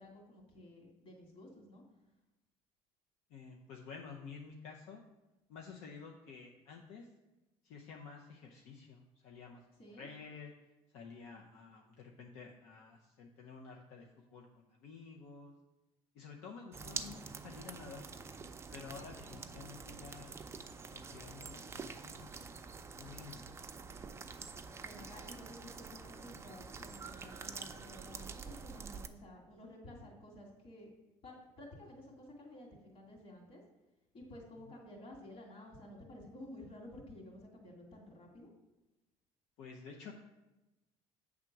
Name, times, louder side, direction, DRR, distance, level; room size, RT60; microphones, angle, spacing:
voice 1, 0.0-1.8 9.8-10.1 19.3-19.4 24.8-30.9 31.2-33.6 34.1-38.5, left 1 dB, 55° left, -1 dB, 2.4 m, -53 dB
voice 2, 3.3-5.0 5.5-7.1 7.6-9.6 10.0-10.5 10.9-15.5 16.1-18.1 18.7-20.4 20.9-23.5 39.6-40.1, left 5 dB, 80° left, 0 dB, 0.7 m, -51 dB
sound 1, 16.7-29.1, right 5 dB, 25° right, 0.5 m, -47 dB
7.8 x 3.6 x 5.9 m, 1.0 s
cardioid pair, 105°, 12 cm